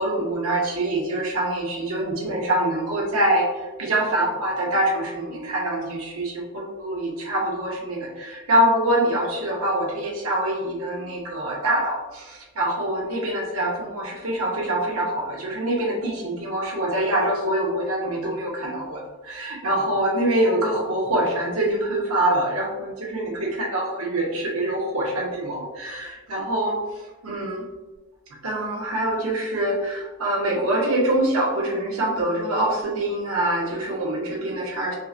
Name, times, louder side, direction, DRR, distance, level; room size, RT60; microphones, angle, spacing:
voice 1, 0.0-3.5 3.8-26.8 27.2-27.6 28.4-35.0, right 1 dB, 70° right, -2 dB, 0.9 m, -25 dB
5.2 x 2.1 x 2.5 m, 1.2 s
head